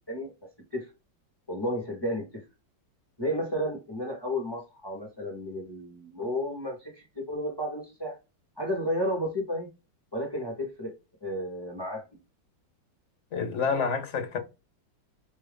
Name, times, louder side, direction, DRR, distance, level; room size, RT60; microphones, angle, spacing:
voice 1, 1.5-2.4 3.2-8.2 8.6-9.7 10.1-10.9 11.2-12.0, equal, 15° left, 1.0 m, -32 dB
voice 2, 13.3-14.4, left 5 dB, 45° left, 1.1 m, -28 dB
5.5 x 2.7 x 3.4 m
omnidirectional pair, 2.0 m